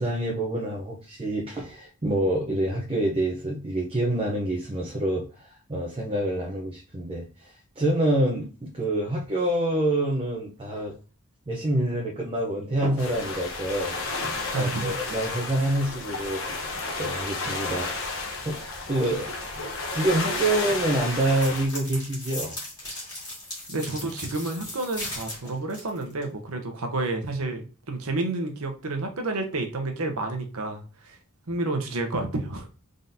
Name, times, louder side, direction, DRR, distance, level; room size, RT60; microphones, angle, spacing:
voice 1, 0.0-10.9 11.5-14.0 14.5-16.4 17.0-17.9 18.4-18.6 18.9-19.6 19.9-22.6 25.4-25.5, right 1 dB, 25° right, -2 dB, 0.7 m, -27 dB
sound 1, 13.0-21.6, left 3 dB, 60° left, 1.0 m, -32 dB
voice 2, 14.5-14.9 23.7-31.2 31.5-32.7, right 2 dB, 75° right, 4 dB, 0.9 m, -30 dB
sound 2, 21.1-26.2, left 1 dB, 15° left, 2.1 m, -37 dB
3.8 x 3.7 x 2.7 m, 0.35 s
head